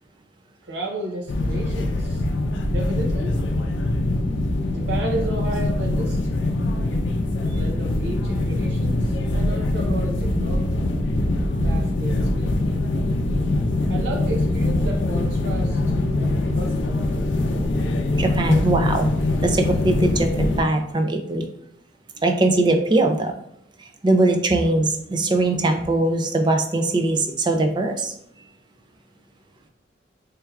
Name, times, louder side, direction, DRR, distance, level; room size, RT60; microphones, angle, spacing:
voice 1, 0.6-2.2 2.7-3.4 4.7-6.2 7.4-10.8 11.6-12.5 13.9-15.8 16.4-17.1, right 2 dB, 65° right, 0 dB, 0.6 m, -32 dB
sound 1, 1.3-20.6, left 2 dB, 85° left, 0.5 m, -23 dB
voice 2, 18.2-19.1 19.4-21.4 22.2-23.3 24.0-28.1, right 2 dB, 25° right, 5 dB, 0.4 m, -21 dB
4.5 x 3.2 x 2.3 m, 0.72 s
head